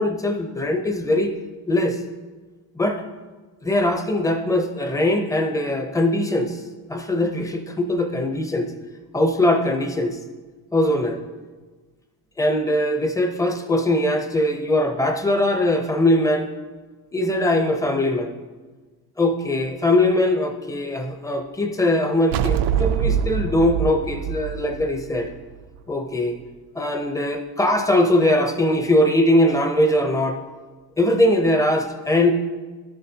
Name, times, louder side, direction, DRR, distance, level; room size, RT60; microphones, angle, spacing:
voice 1, 0.0-1.3 1.7-2.0 2.8-3.0 3.6-6.6 6.9-8.7 9.1-10.2 10.7-11.2 12.4-16.5 17.1-18.3 19.2-25.3 25.9-26.4 26.8-30.4 31.0-32.3, left 1 dB, 10° left, 4 dB, 0.5 m, -21 dB
sound 1, 22.3-25.8, right 8 dB, 90° right, 0.5 m, -24 dB
13.0 x 6.7 x 2.7 m, 1.3 s
cardioid pair, 165°, 38 cm